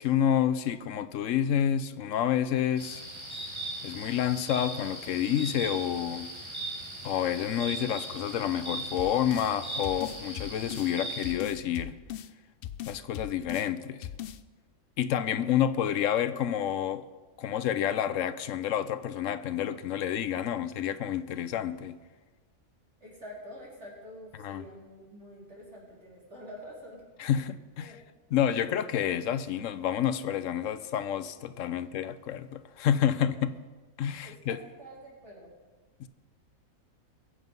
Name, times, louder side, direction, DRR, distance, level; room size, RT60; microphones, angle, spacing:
voice 1, 0.0-3.0 3.8-6.3 7.0-12.0 12.9-14.1 15.0-17.1 17.4-22.0 24.4-24.6 27.2-28.0 28.3-33.6 34.0-34.6 36.0-36.1, left 10 dB, 65° left, 1.0 m, -29 dB
sound 1, 2.8-11.3, right 1 dB, 20° right, 2.4 m, -39 dB
sound 2, 9.0-9.5 9.8-10.9 11.2-12.3 12.6-13.7 14.0-14.4, left 11 dB, 90° left, 0.5 m, -39 dB
voice 2, 23.0-27.0 27.8-28.1 34.2-35.5, equal, 50° right, 4.3 m, -47 dB
22.0 x 7.7 x 5.4 m
omnidirectional pair, 1.5 m